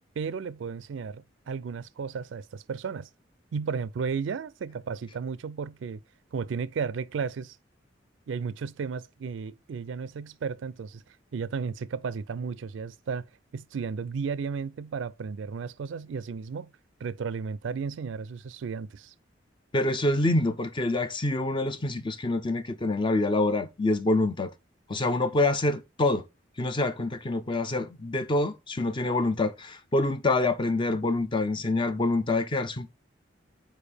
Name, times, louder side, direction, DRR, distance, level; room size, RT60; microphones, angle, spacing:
voice 1, 0.2-3.1 3.5-6.0 6.3-7.6 8.3-11.0 11.3-13.3 13.5-16.7 17.0-19.1, right 5 dB, 75° right, 0.4 m, -34 dB
voice 2, 19.7-24.5 24.9-26.2 26.6-32.9, left 2 dB, 25° left, 0.5 m, -26 dB
6.9 x 4.6 x 3.4 m
head